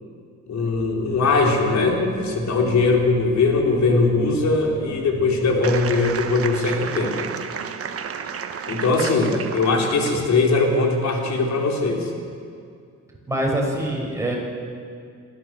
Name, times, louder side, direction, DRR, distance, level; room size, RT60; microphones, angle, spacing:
voice 1, 0.5-7.2 8.7-12.1, left 3 dB, 65° left, 1 dB, 4.2 m, -20 dB
sound 1, 0.7-6.5, right 1 dB, 30° right, 6.1 m, -38 dB
sound 2, 5.6-10.3, right 7 dB, 50° right, 1.3 m, -32 dB
voice 2, 13.3-14.3, right 1 dB, 10° right, -2 dB, 6.7 m, -24 dB
26.0 x 15.0 x 7.7 m, 2.3 s
cardioid pair, 90°, 30 cm